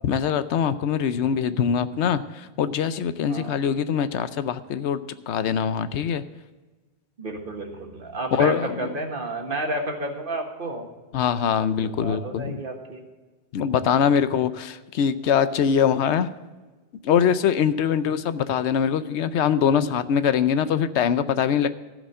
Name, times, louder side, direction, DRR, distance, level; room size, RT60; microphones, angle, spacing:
voice 1, 0.0-5.0 5.3-6.2 8.3-8.9 11.1-12.6 13.5-16.3 17.0-21.7, left 8 dB, 80° left, 13 dB, 0.9 m, -23 dB
voice 2, 7.2-10.9 11.6-13.0, right 2 dB, 50° right, 3 dB, 1.7 m, -31 dB
15.0 x 5.2 x 7.5 m, 1.2 s
omnidirectional pair, 1.1 m